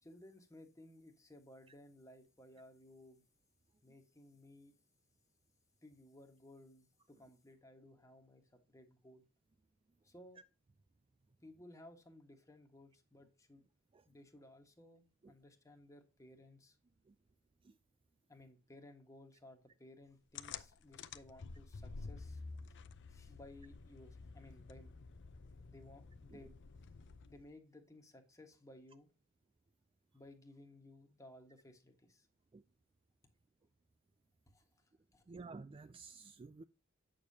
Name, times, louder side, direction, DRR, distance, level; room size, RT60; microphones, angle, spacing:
voice 1, 0.0-3.2 3.8-4.7 5.8-9.2 10.0-10.4 11.4-13.6 14.0-16.8 18.3-22.4 22.7-22.8 23.1-24.9 25.7-26.5 27.2-29.1 30.1-32.3 34.5-34.8 35.1-35.2, left 1 dB, 15° left, 1.4 m, -59 dB
sound 1, 20.4-27.5, left 4 dB, 55° left, 0.6 m, -51 dB
voice 2, 35.3-36.6, right 4 dB, 25° right, 0.3 m, -52 dB
8.7 x 6.6 x 2.7 m
head